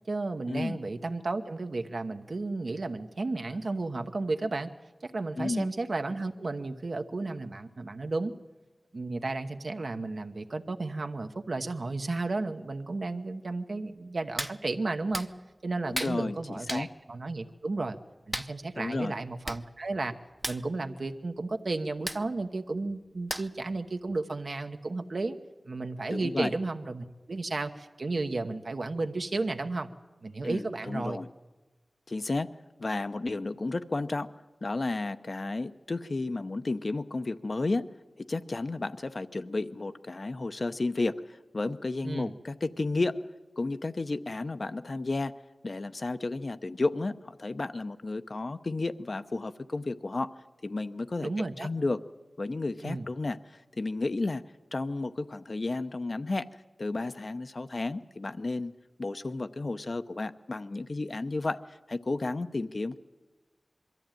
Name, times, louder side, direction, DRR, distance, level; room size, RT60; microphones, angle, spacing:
voice 1, 0.1-4.7 5.0-8.3 8.9-15.3 15.6-18.0 18.3-20.1 20.5-25.4 25.7-29.9 30.2-31.2 42.0-42.3 51.2-51.7 52.8-53.1, right 3 dB, 70° right, 6 dB, 1.0 m, -33 dB
voice 2, 5.4-5.7 15.9-16.9 18.8-19.1 26.1-26.5 30.4-31.3 32.1-34.3 34.6-45.4 45.6-50.4 50.6-51.3 51.6-52.0 52.4-54.4 54.7-56.5 56.8-58.7 59.0-63.0, left 2 dB, 60° left, 10 dB, 0.7 m, -32 dB
Hands, 14.4-14.6 15.1-15.3 15.9-16.2 16.7-16.9 18.3-18.5 19.2-19.3 19.4-19.6 19.9-20.1 20.4-20.6 22.1-22.2 23.3-23.6 24.1-24.2, equal, 10° right, 0.6 m, -34 dB
22.5 x 13.5 x 9.0 m, 1.2 s
wide cardioid pair, 60°, 0 cm